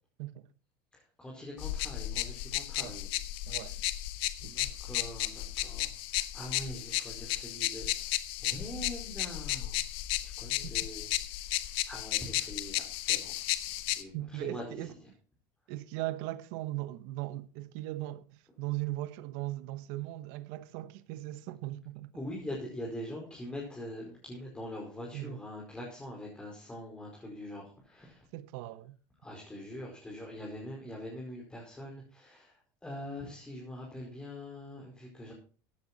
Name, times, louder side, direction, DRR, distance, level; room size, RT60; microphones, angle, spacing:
voice 1, 0.9-3.1 3.5-3.6 4.4-8.1 8.4-9.8 10.2-11.1 11.9-13.3 13.9-14.8 22.1-28.3 29.2-32.5 32.8-35.3, left 1 dB, 10° left, 5.0 m, -43 dB
sound 1, 1.6-14.0, left 16 dB, 65° left, 1.1 m, -34 dB
voice 2, 3.5-3.8 4.4-4.5 14.1-14.9 15.7-22.1 25.1-25.4 28.3-29.0, right 16 dB, 70° right, 1.2 m, -38 dB
15.0 x 10.5 x 4.2 m
supercardioid pair, 120°, 10 cm